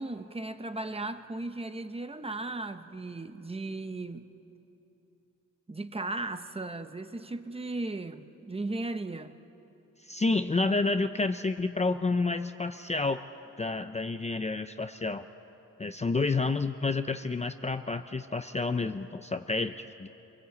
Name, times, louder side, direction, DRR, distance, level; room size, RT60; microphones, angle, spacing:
voice 1, 0.0-4.3 5.7-9.3, right 2 dB, 20° right, 9 dB, 0.9 m, -36 dB
voice 2, 10.0-13.2 13.6-15.3 15.8-20.1, left 3 dB, 20° left, 8 dB, 0.5 m, -29 dB
26.5 x 23.0 x 8.3 m, 3.0 s
wide cardioid pair, 145°, 31 cm